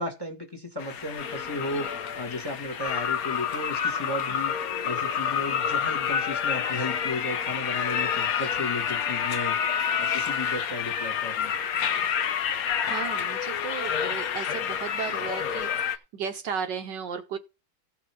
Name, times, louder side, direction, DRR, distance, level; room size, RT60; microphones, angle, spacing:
voice 1, 0.0-4.5 4.8-9.6 10.0-11.5, left 2 dB, 10° left, 1.7 m, -34 dB
sound 1, 0.8-16.0, left 8 dB, 55° left, 1.1 m, -28 dB
voice 2, 12.8-17.4, right 7 dB, 65° right, 1.5 m, -35 dB
15.5 x 5.9 x 4.5 m
omnidirectional pair, 2.2 m